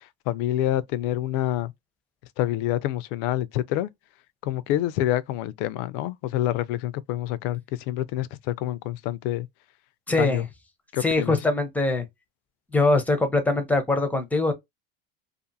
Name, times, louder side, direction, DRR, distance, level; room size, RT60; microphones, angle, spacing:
voice 1, 0.3-1.7 2.4-3.9 4.4-7.6 7.9-9.5 10.2-10.4 10.9-11.4, left 13 dB, 70° left, 0.5 m, -27 dB
voice 2, 10.1-10.4 11.0-12.1 12.7-14.5, left 2 dB, 5° left, 0.7 m, -22 dB
2.5 x 2.5 x 2.6 m
supercardioid pair, 130°, 29 cm